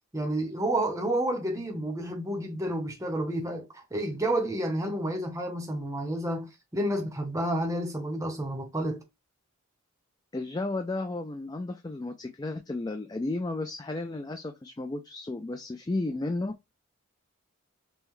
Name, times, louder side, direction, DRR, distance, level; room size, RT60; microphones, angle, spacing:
voice 1, 0.1-9.0, right 1 dB, 15° right, 0.7 m, -30 dB
voice 2, 10.3-16.7, left 2 dB, 15° left, 0.3 m, -33 dB
5.4 x 2.1 x 3.1 m
head